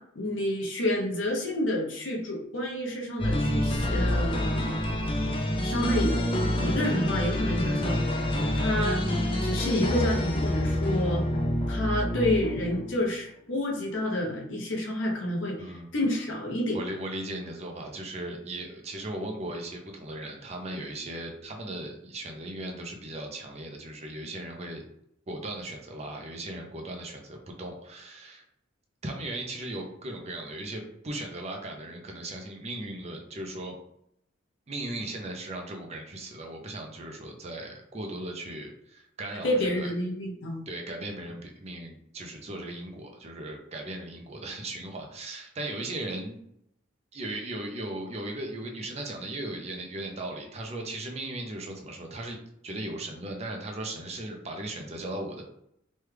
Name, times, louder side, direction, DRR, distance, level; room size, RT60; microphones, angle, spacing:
voice 1, 0.1-4.4 5.6-6.3 6.6-8.2 8.5-9.0 9.4-11.2 11.7-16.8 39.4-40.6, left 1 dB, 70° left, 0 dB, 0.8 m, -29 dB
sound 1, 3.2-13.0, left 1 dB, 25° left, 0.4 m, -27 dB
voice 2, 16.7-24.8 25.3-28.4 29.0-33.7 34.7-39.9 40.7-46.4 47.1-52.4 52.6-55.4, right 1 dB, 30° right, 2 dB, 0.5 m, -37 dB
3.1 x 2.3 x 3.2 m, 0.74 s
head